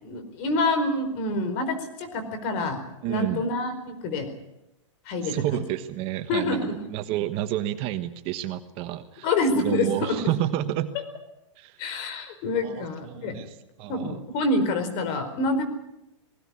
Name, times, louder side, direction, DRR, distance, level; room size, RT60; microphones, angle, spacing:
voice 1, 0.0-2.8 3.1-4.3 5.1-5.6 6.3-6.8 9.2-10.2 11.8-13.4 13.9-15.6, left 2 dB, 40° left, 9 dB, 4.6 m, -27 dB
voice 2, 3.0-3.5 5.2-9.3 9.5-10.9 11.6-11.8 12.6-14.2, right 13 dB, 35° right, 10 dB, 1.3 m, -30 dB
20.0 x 16.5 x 9.7 m, 0.91 s
hypercardioid pair, 140°, 16 cm